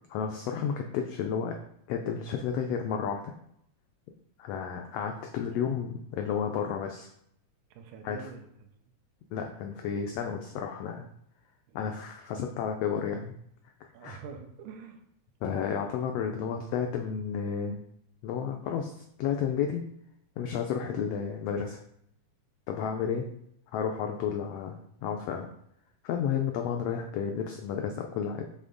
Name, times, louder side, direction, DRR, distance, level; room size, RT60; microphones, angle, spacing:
voice 1, 0.1-1.5 1.9-3.3 4.4-7.1 8.0-8.2 9.3-11.1 11.7-13.3 14.0-14.2 15.4-17.8 18.2-18.9 19.2-19.8 20.4-21.8 22.7-23.3 23.7-25.5 26.0-28.4, left 7 dB, 90° left, 4 dB, 1.4 m, -32 dB
voice 2, 7.7-8.5 11.7-12.0 13.9-15.0, right 5 dB, 85° right, 5 dB, 2.2 m, -45 dB
7.2 x 3.4 x 3.8 m, 0.73 s
omnidirectional pair, 3.4 m